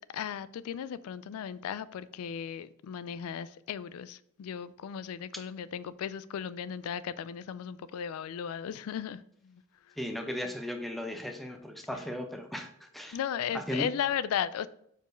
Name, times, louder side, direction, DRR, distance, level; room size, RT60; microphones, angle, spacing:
voice 1, 0.0-9.6 9.9-10.0 13.1-14.7, left 8 dB, 90° left, 0.3 m, -36 dB
voice 2, 10.0-13.2 13.5-13.9, left 1 dB, ahead, 0.6 m, -36 dB
4.9 x 4.5 x 5.1 m
head